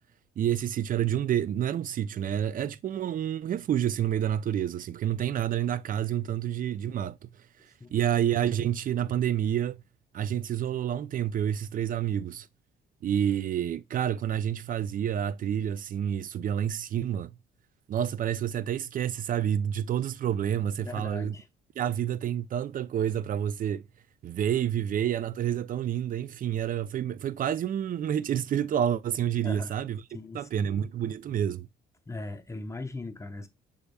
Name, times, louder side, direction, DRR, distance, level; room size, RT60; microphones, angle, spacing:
voice 1, 0.4-7.3 7.9-9.8 10.1-12.5 13.0-17.3 17.9-21.4 21.8-23.8 24.2-30.0 30.3-31.7, right 10 dB, 45° right, 0.4 m, -29 dB
voice 2, 20.8-21.5 29.4-29.7 30.1-30.7 32.1-33.5, left 2 dB, 15° left, 0.7 m, -39 dB
6.6 x 3.5 x 2.2 m
cardioid pair, 90°, 20 cm